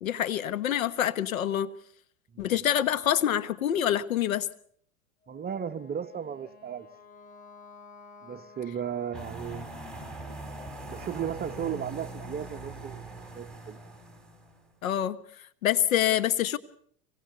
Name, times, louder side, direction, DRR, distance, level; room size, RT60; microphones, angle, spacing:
voice 1, 0.0-1.7 2.4-4.5 14.8-15.2 15.6-16.6, left 11 dB, 80° left, 1.2 m, -26 dB
Wind instrument woodwind instrument, 5.2-10.2, left 4 dB, 50° left, 7.1 m, -53 dB
voice 2, 5.3-6.9 8.2-9.7 10.9-13.0 13.3-13.8, right 8 dB, 25° right, 1.0 m, -35 dB
sound 1, 9.1-14.6, right 2 dB, ahead, 5.4 m, -42 dB
26.5 x 22.5 x 6.8 m
hypercardioid pair, 95°, 40 cm